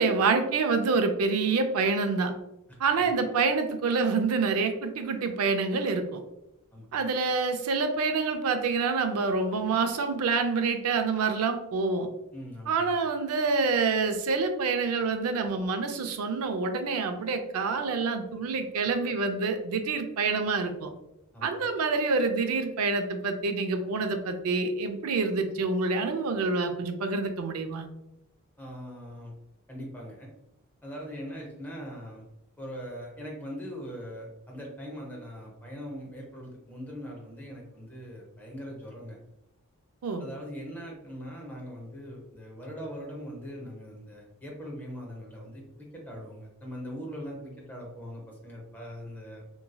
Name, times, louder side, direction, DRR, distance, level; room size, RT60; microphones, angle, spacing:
voice 1, 0.0-2.3 2.8-6.2 6.9-12.1 12.7-20.9 21.4-27.9 40.0-40.2, right 4 dB, 75° right, 7 dB, 0.4 m, -27 dB
voice 2, 12.3-12.9 21.3-21.6 28.6-29.3 29.7-30.3 30.8-32.3 32.6-39.2 40.2-49.4, equal, 10° left, -2 dB, 0.6 m, -41 dB
2.9 x 2.6 x 2.2 m, 0.88 s
head